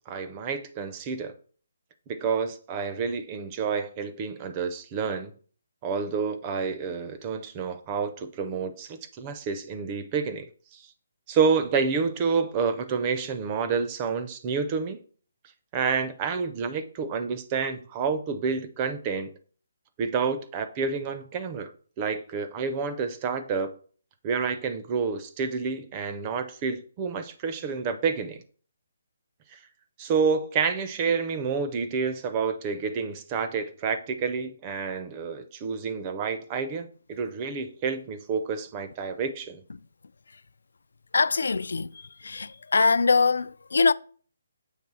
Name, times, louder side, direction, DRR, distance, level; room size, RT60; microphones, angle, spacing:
voice 1, 0.1-1.4 2.1-5.3 5.8-10.8 11.3-15.0 15.7-19.3 20.0-21.7 22.0-23.7 24.2-28.4 29.5-29.6 30.0-39.6, right 5 dB, 15° right, 0.4 m, -29 dB
voice 2, 41.1-41.9 42.2-43.9, left 4 dB, 90° left, 0.3 m, -22 dB
7.2 x 3.4 x 6.0 m
hypercardioid pair, 175°, 0 cm